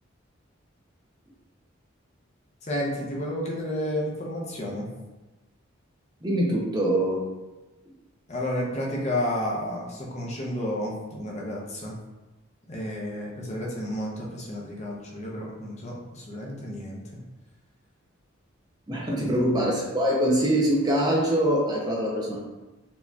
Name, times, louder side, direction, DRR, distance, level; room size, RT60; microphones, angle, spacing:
voice 1, 2.6-4.9 8.3-12.0 12.7-17.0 19.1-19.5, left 1 dB, 35° left, -3 dB, 0.6 m, -31 dB
voice 2, 6.2-7.2 18.9-22.4, right 1 dB, 20° right, -3 dB, 0.5 m, -24 dB
4.3 x 2.8 x 2.3 m, 1.1 s
head